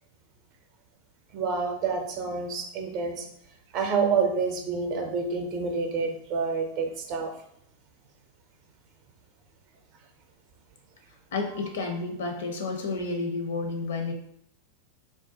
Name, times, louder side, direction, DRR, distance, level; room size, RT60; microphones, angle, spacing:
voice 1, 1.3-3.2 3.7-7.3, right 5 dB, 40° right, 4 dB, 0.6 m, -28 dB
voice 2, 11.3-14.1, left 3 dB, 60° left, 4 dB, 0.5 m, -31 dB
2.5 x 2.2 x 3.8 m, 0.71 s
figure-of-eight pair, 90°, 0 cm